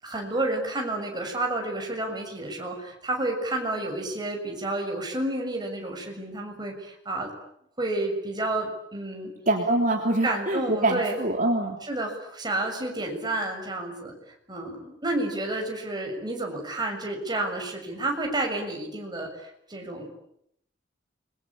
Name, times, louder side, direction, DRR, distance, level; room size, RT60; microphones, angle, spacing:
voice 1, 0.0-7.3 7.8-9.3 10.2-11.2 11.8-14.1 14.5-20.1, right 2 dB, 25° right, 2 dB, 6.8 m, -30 dB
voice 2, 9.5-11.8, right 2 dB, 45° right, 2 dB, 3.4 m, -24 dB
29.5 x 23.0 x 8.7 m, 0.74 s
head